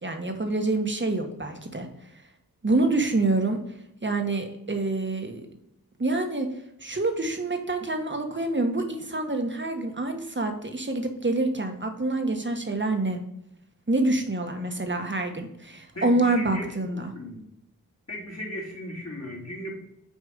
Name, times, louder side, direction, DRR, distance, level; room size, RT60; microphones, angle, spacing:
voice 1, 0.0-1.9 2.6-3.6 4.0-5.4 6.0-6.5 6.8-13.2 13.9-17.1, right 2 dB, 30° right, 5 dB, 1.4 m, -26 dB
voice 2, 15.9-17.5 18.1-19.7, equal, 45° left, -3 dB, 3.0 m, -37 dB
6.6 x 4.4 x 5.3 m, 0.81 s
cardioid pair, 45°, 36 cm